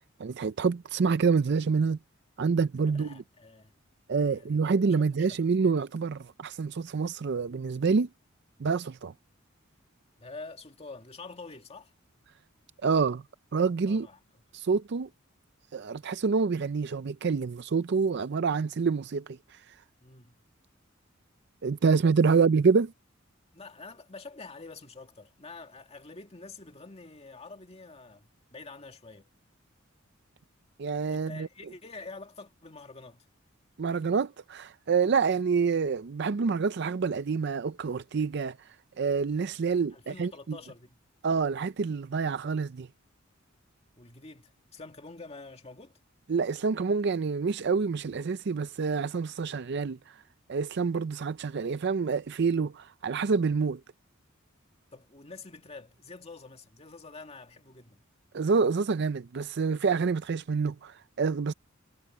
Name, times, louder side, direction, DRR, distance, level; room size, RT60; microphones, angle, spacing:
voice 1, 0.2-2.0 2.4-3.2 4.1-8.1 8.6-9.1 12.8-13.2 13.5-14.1 14.5-15.1 15.7-19.6 21.6-22.9 30.8-31.5 33.8-38.6 39.0-40.6 41.2-42.9 46.3-50.2 50.5-53.8 58.3-61.5, right 5 dB, 55° right, 0.5 m, -27 dB
voice 2, 2.9-3.7 4.2-4.6 4.9-5.7 10.2-11.9 13.8-14.2 20.0-20.3 22.3-22.4 23.5-29.3 31.1-33.3 39.9-41.0 44.0-45.9 54.9-58.0, left 3 dB, 30° left, 2.1 m, -47 dB
head